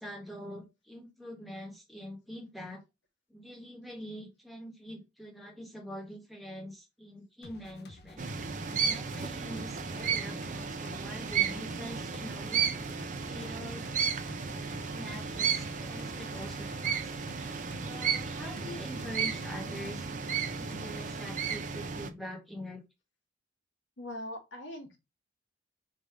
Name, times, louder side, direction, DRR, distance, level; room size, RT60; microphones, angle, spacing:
voice 1, 0.0-2.8 3.3-8.3 8.8-12.6 13.2-13.9 14.9-17.1 17.8-20.2 20.5-22.8, equal, ahead, 1.1 m, -44 dB
sound 1, 7.4-21.1, left 3 dB, 55° left, 0.5 m, -52 dB
sound 2, 8.2-22.1, right 6 dB, 40° right, 0.5 m, -34 dB
voice 2, 24.0-25.0, left 1 dB, 75° left, 1.4 m, -42 dB
3.3 x 2.6 x 4.4 m
head